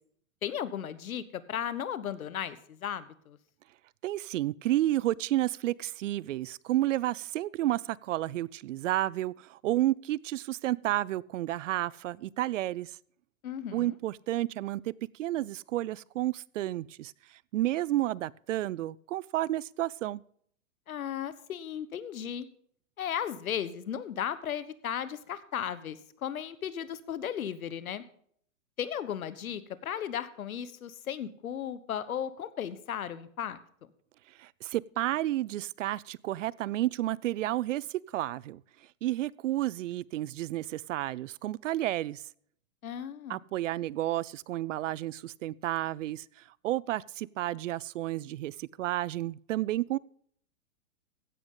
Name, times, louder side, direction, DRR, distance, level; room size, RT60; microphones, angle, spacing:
voice 1, 0.4-3.4 13.4-13.9 20.9-22.5 23.0-28.0 28.8-33.6 42.8-43.4, left 9 dB, 85° left, 1.2 m, -35 dB
voice 2, 4.0-13.0 13.7-14.9 15.2-17.1 17.5-20.2 34.4-38.6 39.0-42.2 43.3-50.0, right 15 dB, 65° right, 0.5 m, -31 dB
15.5 x 10.5 x 3.8 m
hypercardioid pair, 145°, 41 cm